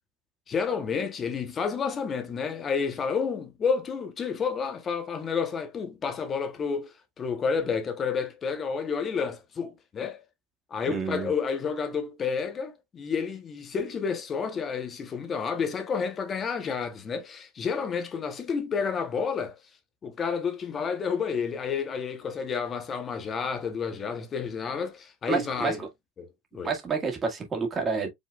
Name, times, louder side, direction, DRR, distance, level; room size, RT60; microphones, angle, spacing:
voice 1, 0.5-10.2 10.7-19.5 20.0-25.8 26.2-26.3 26.5-26.7, left 6 dB, 25° left, 0.8 m, -30 dB
voice 2, 10.9-11.3 25.3-25.8 26.6-28.1, right 5 dB, 20° right, 1.6 m, -29 dB
5.1 x 3.7 x 2.3 m
supercardioid pair, 140°, 0 cm